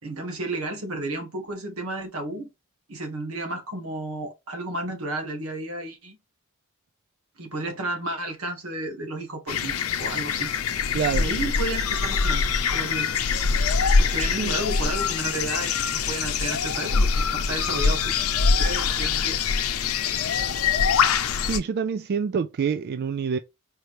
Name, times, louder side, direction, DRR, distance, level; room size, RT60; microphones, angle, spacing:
voice 1, 0.0-2.5 2.9-6.2 7.4-10.5 11.1-12.4 12.7-13.2 13.5-13.6 14.0-18.2 18.6-19.4, right 2 dB, 85° right, 1.6 m, -32 dB
sound 1, 9.5-21.6, left 5 dB, 90° left, 0.6 m, -24 dB
voice 2, 10.9-11.3 14.4-14.6 21.4-23.4, right 6 dB, 50° right, 0.3 m, -26 dB
4.6 x 3.1 x 2.7 m
head